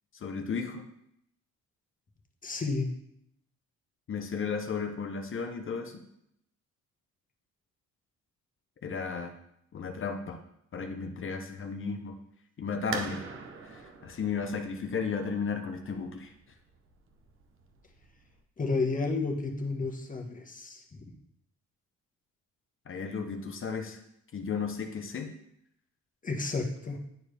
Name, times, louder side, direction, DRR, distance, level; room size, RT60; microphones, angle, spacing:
voice 1, 0.1-0.9 4.1-6.0 8.8-9.3 9.7-10.4 10.7-12.2 12.6-13.2 13.6-16.3 22.9-24.0 24.3-25.3, left 5 dB, 45° left, 6 dB, 0.8 m, -34 dB
voice 2, 2.4-2.9 18.6-21.1 26.2-27.0, left 3 dB, 25° left, 2 dB, 1.3 m, -31 dB
sound 1, 12.9-18.4, right 4 dB, 45° right, 0.9 m, -43 dB
10.5 x 4.5 x 3.4 m, 0.76 s
cardioid pair, 90°, 30 cm